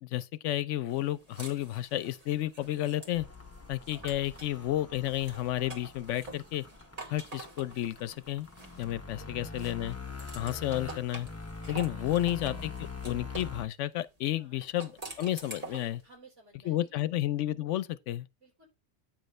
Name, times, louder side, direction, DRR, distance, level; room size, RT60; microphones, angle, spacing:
voice 1, 0.0-3.3 3.7-6.6 7.1-8.5 8.8-10.0 10.3-11.3 11.7-16.0 16.6-18.3, left 14 dB, 80° left, 0.9 m, -32 dB
sound 1, 0.9-4.6 5.0-9.2 9.6-13.6 14.6-16.0, right 2 dB, 35° right, 1.4 m, -47 dB
sound 2, 3.1-13.7, left 4 dB, 15° left, 0.5 m, -44 dB
voice 2, 9.2-9.7 12.2-12.3 14.4-14.6 15.7-17.1 18.4-18.7, right 3 dB, 85° right, 4.3 m, -58 dB
8.9 x 3.0 x 6.5 m
omnidirectional pair, 1.2 m